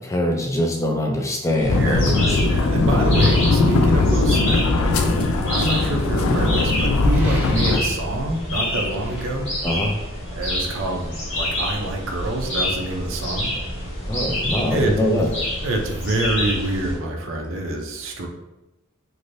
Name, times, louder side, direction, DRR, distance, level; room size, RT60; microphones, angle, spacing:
voice 1, 0.0-2.4 5.0-5.3 9.6-9.9 14.1-15.3 18.2-18.3, left 1 dB, 15° left, 1 dB, 0.4 m, -23 dB
sound 1, 1.6-17.0, left 1 dB, 70° left, 1.5 m, -28 dB
sound 2, 1.7-7.8, left 3 dB, 90° left, 0.4 m, -19 dB
voice 2, 1.7-4.6 5.5-9.5 10.4-13.5 14.7-15.3 15.6-18.3, right 1 dB, 70° right, 2 dB, 0.5 m, -26 dB
sound 3, 7.0-7.9 9.0-9.3, equal, 10° right, 0.8 m, -38 dB
3.2 x 2.6 x 2.6 m, 0.96 s
head